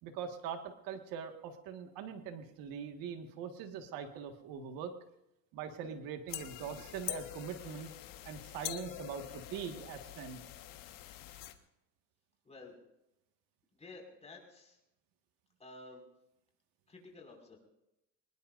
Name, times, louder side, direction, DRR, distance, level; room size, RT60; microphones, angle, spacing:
voice 1, 0.0-4.9 5.5-7.9 8.3-10.4, right 7 dB, 80° right, 5 dB, 1.8 m, -42 dB
sound 1, 6.3-11.5, left 13 dB, 70° left, 1.5 m, -45 dB
voice 2, 13.7-14.8 15.6-16.0 16.9-17.6, left 3 dB, 20° left, 0 dB, 5.6 m, -52 dB
24.5 x 20.5 x 2.6 m, 0.86 s
cardioid pair, 120°, 34 cm